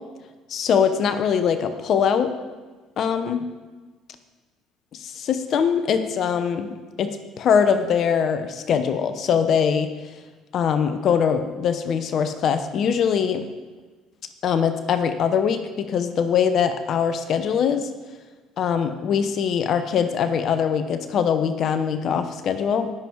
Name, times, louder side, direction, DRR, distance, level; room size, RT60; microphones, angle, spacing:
voice 1, 0.5-2.3 3.0-3.4 5.0-9.9 10.5-13.4 14.4-17.9 18.6-22.9, left 7 dB, 55° left, 9 dB, 1.0 m, -22 dB
19.0 x 7.4 x 4.7 m, 1.3 s
supercardioid pair, 80°, 0 cm